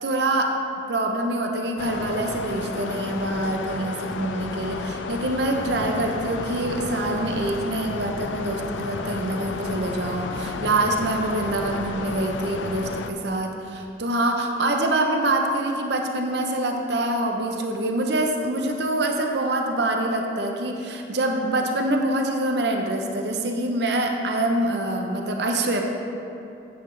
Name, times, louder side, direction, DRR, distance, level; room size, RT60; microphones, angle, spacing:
voice 1, 0.0-0.6 0.9-25.8, right 1 dB, 65° right, 2 dB, 0.7 m, -25 dB
sound 1, 1.8-13.1, left 3 dB, 90° left, 0.4 m, -32 dB
9.3 x 7.8 x 3.3 m, 2.8 s
head